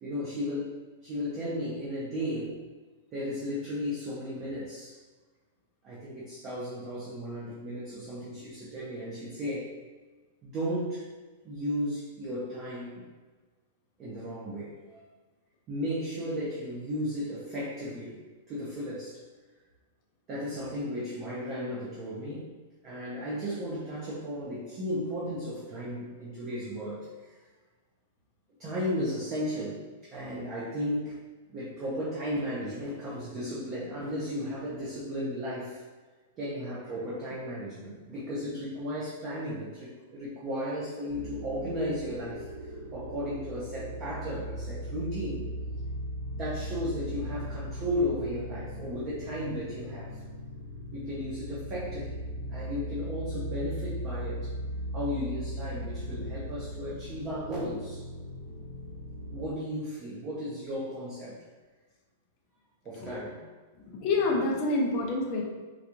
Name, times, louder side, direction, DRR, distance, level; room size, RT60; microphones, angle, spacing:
voice 1, 0.0-2.6 3.1-5.0 5.8-9.7 10.4-11.1 11.4-13.1 14.0-15.0 15.7-19.2 20.3-22.5 22.8-27.4 28.6-31.1 31.5-35.8 36.4-45.5 46.3-50.2 50.9-52.2 52.5-54.5 54.9-58.0 59.3-61.3 62.8-63.5, equal, 20° right, -7 dB, 0.6 m, -35 dB
sound 1, 41.1-59.5, equal, 70° left, 1.0 m, -38 dB
voice 2, 63.8-65.4, left 3 dB, 30° left, -1 dB, 0.5 m, -27 dB
3.8 x 2.3 x 2.9 m, 1.3 s
supercardioid pair, 175°, 0 cm